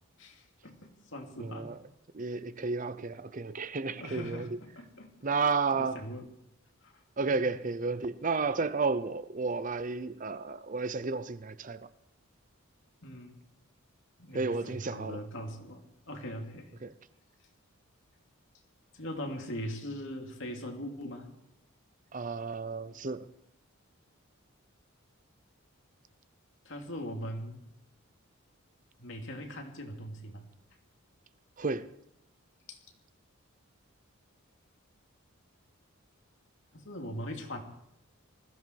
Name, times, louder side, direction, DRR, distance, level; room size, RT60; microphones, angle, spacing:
voice 1, 0.2-1.7 3.8-5.1 5.7-6.3 6.8-6.9 7.3-7.5 13.0-13.4 14.2-16.8 18.9-21.3 26.6-27.6 29.0-30.5 32.7-32.8 36.7-37.6, equal, 60° left, 2.7 m, -41 dB
voice 2, 1.4-1.8 2.1-4.6 5.2-6.0 7.2-11.9 14.3-15.2 16.8-16.9 22.1-23.3 31.6-31.9, right 4 dB, 35° right, 0.6 m, -32 dB
20.0 x 14.5 x 4.7 m
head